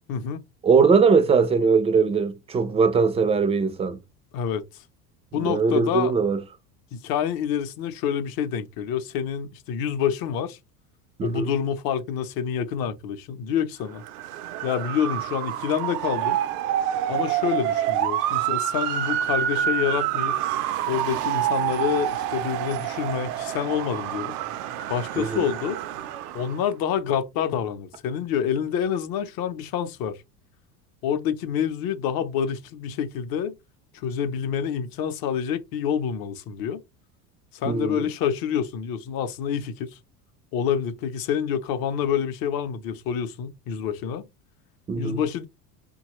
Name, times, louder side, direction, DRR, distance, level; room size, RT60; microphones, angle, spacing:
voice 1, 0.1-0.4 4.3-4.6 5.3-6.1 6.9-10.6 11.2-14.0 14.6-16.4 17.1-20.4 20.9-24.4 24.9-25.8 26.3-30.2 31.0-33.5 34.0-36.8 37.5-39.9 40.5-44.2 45.0-45.5, left 8 dB, 50° left, 0.6 m, -27 dB
voice 2, 0.6-4.0 5.3-6.4 11.2-11.5 25.2-25.5 37.6-38.1 44.9-45.2, right 5 dB, 15° right, 0.3 m, -21 dB
Motor vehicle (road) / Siren, 14.0-26.7, right 11 dB, 80° right, 0.5 m, -27 dB
2.9 x 2.2 x 2.9 m
supercardioid pair, 95°, 47 cm